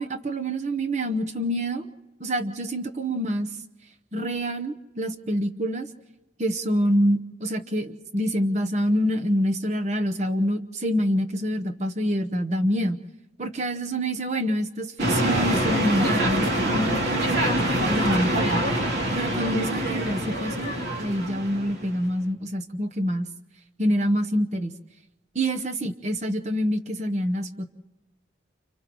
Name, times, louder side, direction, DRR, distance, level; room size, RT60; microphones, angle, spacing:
voice 1, 0.0-1.9 2.2-3.5 4.1-5.9 6.4-13.0 13.4-18.6 19.1-20.7 21.0-23.3 23.8-24.7 25.3-27.7, equal, 35° right, 7 dB, 0.9 m, -26 dB
sound 1, 15.0-22.0, right 1 dB, 65° right, 2.8 m, -25 dB
30.0 x 29.5 x 3.1 m, 1.2 s
head